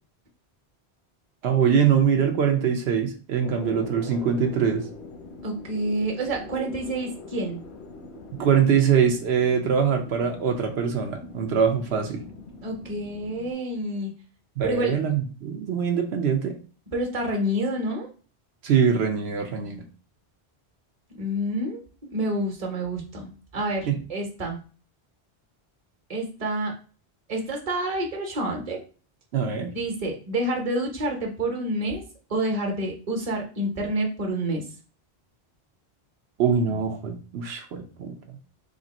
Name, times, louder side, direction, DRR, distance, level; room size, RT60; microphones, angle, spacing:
voice 1, 1.4-4.8 8.4-12.2 14.6-16.6 18.6-19.8 23.9-24.0 29.3-29.8 36.4-38.2, right 7 dB, 85° right, 3 dB, 0.9 m, -23 dB
sound 1, 3.4-13.5, left 3 dB, 90° left, 0.9 m, -43 dB
voice 2, 5.4-7.6 12.6-14.1 14.6-14.9 16.9-18.1 21.2-21.8 22.1-24.6 26.1-26.7 27.3-28.8 29.7-32.0 32.3-34.6, right 1 dB, 35° right, 2 dB, 0.9 m, -28 dB
3.5 x 2.6 x 4.0 m, 0.38 s
omnidirectional pair, 1.1 m